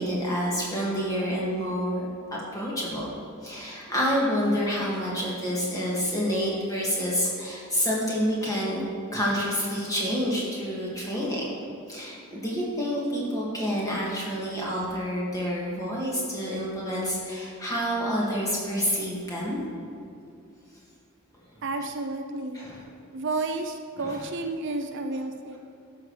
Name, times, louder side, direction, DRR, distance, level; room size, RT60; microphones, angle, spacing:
voice 1, 0.0-2.1 2.5-3.2 3.4-8.8 9.1-11.5 11.9-19.6 22.5-22.8 24.0-24.2, equal, 15° left, -5 dB, 2.0 m, -28 dB
voice 2, 21.6-22.6 23.1-25.6, right 3 dB, 55° right, 5 dB, 0.5 m, -31 dB
12.5 x 6.4 x 3.3 m, 2.5 s
head